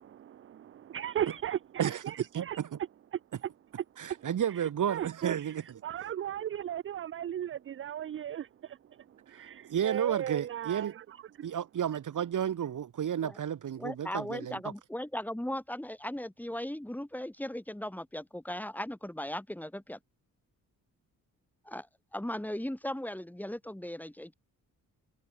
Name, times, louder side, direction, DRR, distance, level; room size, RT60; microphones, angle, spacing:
voice 1, 0.0-2.6 3.1-3.5 3.8-11.5, right 10 dB, 40° right, 0.4 m, -37 dB
voice 2, 4.0-5.6 9.3-9.4 9.7-10.9 11.4-14.6, right 9 dB, 60° right, 1.4 m, -32 dB
voice 3, 13.8-20.0 21.7-21.9 22.1-24.3, left 1 dB, 5° left, 3.7 m, -37 dB
cardioid pair, 115°, 34 cm